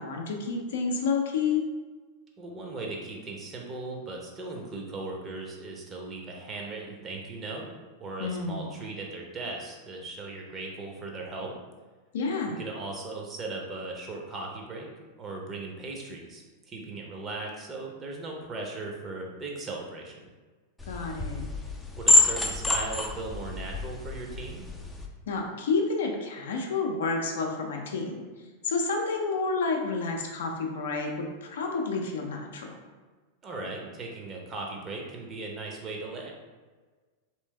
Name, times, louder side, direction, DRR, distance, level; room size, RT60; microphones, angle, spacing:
voice 1, 0.0-1.6 8.2-8.7 12.1-12.6 20.9-21.5 25.3-28.2 28.6-32.8, left 4 dB, 60° left, 2 dB, 0.5 m, -30 dB
voice 2, 2.4-7.7 8.0-11.6 12.6-14.9 15.2-20.3 21.9-24.6 33.4-36.3, right 2 dB, 25° right, 0 dB, 0.7 m, -38 dB
sound 1, 20.8-25.1, left 1 dB, 10° left, 0.4 m, -27 dB
3.2 x 3.1 x 3.2 m, 1.4 s
figure-of-eight pair, 90°, 0 cm